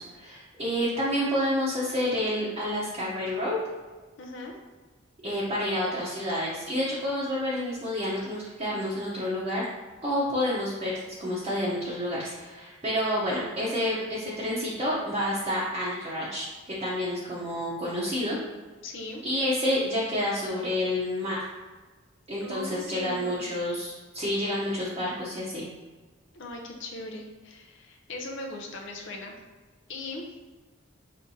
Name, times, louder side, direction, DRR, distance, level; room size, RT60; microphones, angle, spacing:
voice 1, 0.0-3.6 5.2-9.6 10.0-10.9 11.2-18.4 19.2-21.4 22.3-25.7, left 1 dB, 25° right, -8 dB, 0.8 m, -29 dB
voice 2, 4.2-4.5 18.8-19.2 22.4-23.4 26.3-29.4 29.9-30.2, left 2 dB, 60° left, 1 dB, 0.6 m, -39 dB
5.4 x 3.6 x 2.7 m, 1.3 s
head